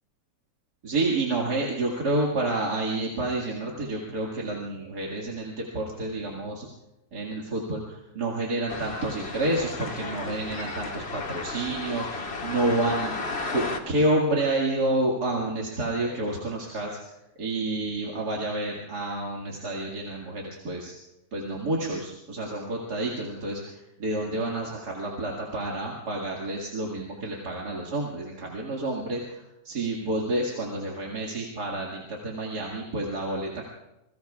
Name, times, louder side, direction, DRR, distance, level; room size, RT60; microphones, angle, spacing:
voice 1, 0.8-6.7 7.1-17.0 17.4-20.9 21.3-33.6, right 2 dB, 65° right, -2 dB, 2.6 m, -29 dB
sound 1, 8.7-13.8, left 3 dB, 40° left, 1.7 m, -34 dB
27.0 x 22.0 x 2.4 m, 0.93 s
omnidirectional pair, 1.9 m